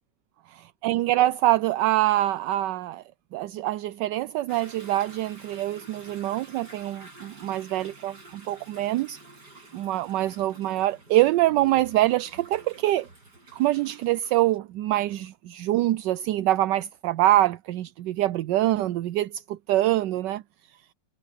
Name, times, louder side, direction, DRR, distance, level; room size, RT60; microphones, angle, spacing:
voice 1, 0.5-3.0 3.3-9.2 9.7-13.1 13.5-20.4, right 15 dB, 75° right, 1.0 m, -25 dB
Toilet flush / Drip / Trickle dribble, 4.5-14.6, right 2 dB, 50° right, 6.5 m, -49 dB
omnidirectional pair, 2.3 m